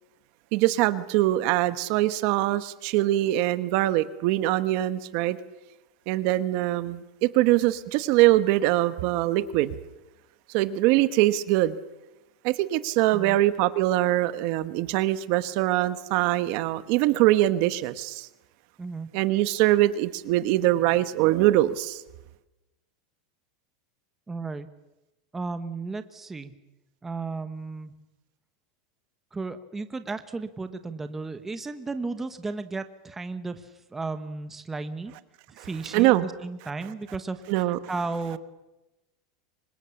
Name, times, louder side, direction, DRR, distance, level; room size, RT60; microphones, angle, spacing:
voice 1, 0.5-5.4 6.1-9.7 10.5-11.8 12.4-18.3 19.1-22.0 35.6-35.7 35.9-36.3 37.5-37.8, right 15 dB, 45° right, 13 dB, 1.2 m, -23 dB
voice 2, 24.3-24.7 25.3-26.5 27.0-27.9 29.3-35.1 35.5-38.4, right 3 dB, 10° right, 10 dB, 1.2 m, -34 dB
29.5 x 25.5 x 7.1 m, 0.97 s
supercardioid pair, 165°, 3 cm